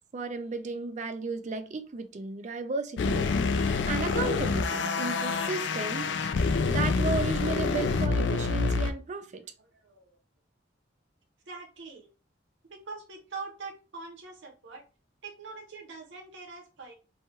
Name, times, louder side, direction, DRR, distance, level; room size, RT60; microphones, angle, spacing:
voice 1, 0.1-6.3 6.7-9.4, right 3 dB, 40° right, 0.4 m, -34 dB
sound 1, 3.0-8.9, left 4 dB, 70° left, 0.4 m, -27 dB
voice 2, 9.7-10.2 11.5-12.1 12.7-14.8 15.2-16.9, right 4 dB, 90° right, 0.9 m, -43 dB
3.1 x 2.2 x 2.9 m
head